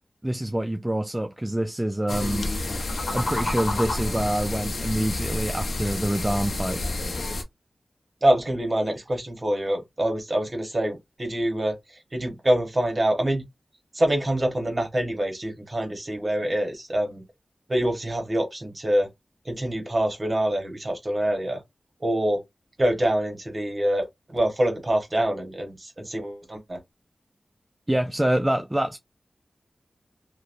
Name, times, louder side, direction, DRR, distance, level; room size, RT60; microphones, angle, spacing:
voice 1, 0.2-2.5 3.1-6.8 27.9-29.0, right 1 dB, 15° right, 0.3 m, -26 dB
sound 1, 2.1-7.4, left 2 dB, 75° left, 0.6 m, -29 dB
voice 2, 8.2-11.8 12.1-13.4 13.9-17.2 17.7-19.1 19.4-21.6 22.0-22.4 22.8-26.8, right 1 dB, 35° right, 1.0 m, -25 dB
3.0 x 2.1 x 2.5 m
wide cardioid pair, 75°, 0 cm